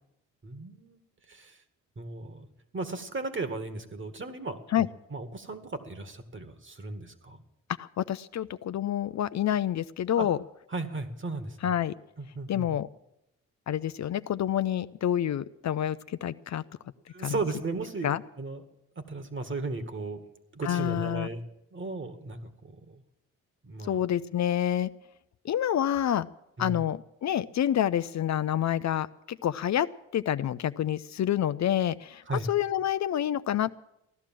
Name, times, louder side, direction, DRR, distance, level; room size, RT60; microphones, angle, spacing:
voice 1, 0.4-1.0 1.3-1.6 2.0-7.4 10.2-10.3 10.7-11.7 12.2-12.7 17.1-18.6 19.0-20.3 20.5-21.4 21.7-23.0 23.6-24.0 26.6-26.8 32.3-32.5, right 3 dB, 35° right, 9 dB, 2.0 m, -36 dB
voice 2, 7.8-10.4 11.6-11.9 12.5-12.9 13.7-16.6 17.2-17.4 18.0-18.2 20.6-21.3 23.9-24.9 25.4-26.3 26.6-32.2 32.5-33.7, left 10 dB, 55° left, 13 dB, 0.6 m, -28 dB
16.0 x 11.5 x 7.6 m, 0.83 s
supercardioid pair, 65°, 33 cm